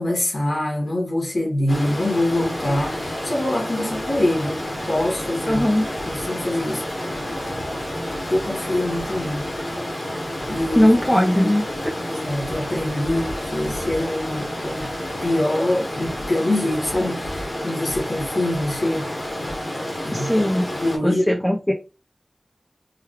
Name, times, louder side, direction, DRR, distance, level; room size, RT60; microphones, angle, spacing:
voice 1, 0.0-7.2 8.3-9.4 10.5-10.9 11.2-11.6 12.1-14.9 15.2-19.1 20.0-21.5, left 1 dB, 70° left, 1.6 m, -25 dB
Stream, 1.7-21.0, left 1 dB, 55° left, 2.0 m, -30 dB
voice 2, 5.5-5.8 10.8-11.6 20.1-20.7 21.0-21.7, equal, 10° left, 0.7 m, -18 dB
4.8 x 2.3 x 3.2 m
wide cardioid pair, 70°, 0 cm